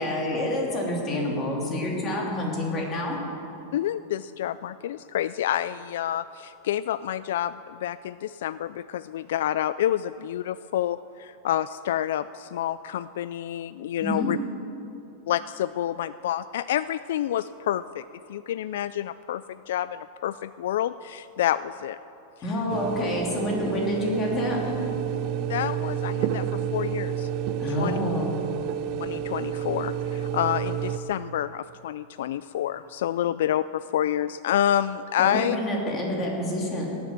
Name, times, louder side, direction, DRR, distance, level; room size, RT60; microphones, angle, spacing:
voice 1, 0.0-3.2 14.0-14.3 22.4-24.8 27.6-28.3 35.2-36.9, left 1 dB, 20° left, -2 dB, 3.1 m, -28 dB
voice 2, 3.7-14.4 15.3-22.0 25.5-27.3 27.7-28.0 29.0-35.6, left 11 dB, 70° left, 15 dB, 0.3 m, -28 dB
sound 1, 22.7-31.0, right 9 dB, 40° right, 0.7 m, -30 dB
17.5 x 10.5 x 7.4 m, 2.9 s
supercardioid pair, 165°, 0 cm